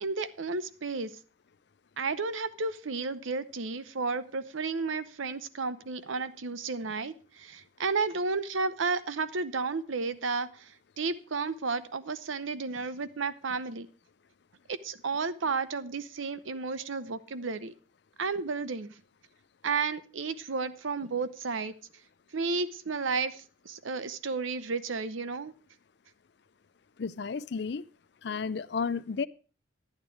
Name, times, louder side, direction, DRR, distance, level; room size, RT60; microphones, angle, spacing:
voice 1, 0.0-1.1 2.0-13.9 14.7-17.7 18.2-18.9 19.6-21.7 22.3-25.5, right 4 dB, 80° right, 0.7 m, -32 dB
voice 2, 27.0-27.8 28.2-29.3, left 5 dB, 55° left, 0.5 m, -32 dB
11.5 x 8.9 x 4.6 m
head